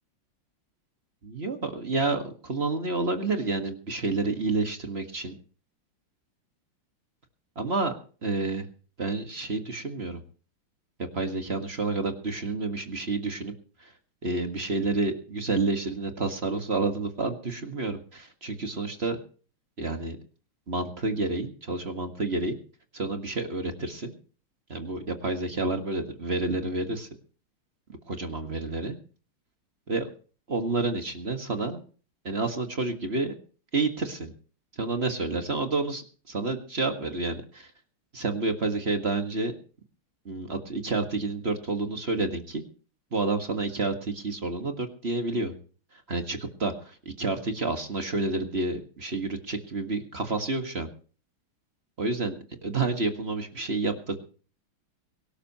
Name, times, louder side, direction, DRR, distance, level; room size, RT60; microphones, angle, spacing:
voice 1, 1.2-5.4 7.6-7.9 8.2-8.7 9.0-10.2 11.1-13.5 13.8-13.9 14.2-19.2 19.8-20.2 20.7-22.6 22.9-24.1 24.7-27.1 28.1-29.0 29.9-30.1 30.5-31.8 32.2-33.3 33.7-34.3 34.7-37.7 38.1-39.6 40.3-42.6 43.1-45.5 45.9-50.9 52.0-52.3 52.6-54.2, right 3 dB, 30° right, 6 dB, 1.8 m, -29 dB
23.0 x 13.0 x 3.0 m, 0.39 s
omnidirectional pair, 2.4 m